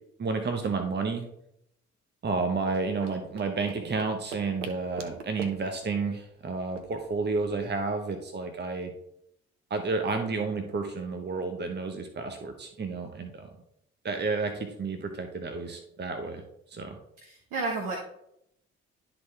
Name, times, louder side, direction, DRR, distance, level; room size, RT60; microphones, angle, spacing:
voice 1, 0.2-1.3 2.2-8.9 9.7-13.5 14.0-16.4 16.7-17.0, right 4 dB, 30° right, 6 dB, 1.1 m, -31 dB
sound 1, 2.7-7.8, right 5 dB, 85° right, 0.7 m, -44 dB
voice 2, 17.2-18.0, right 3 dB, 65° right, 1 dB, 1.4 m, -31 dB
12.0 x 4.0 x 3.4 m, 0.77 s
figure-of-eight pair, 45°, 36 cm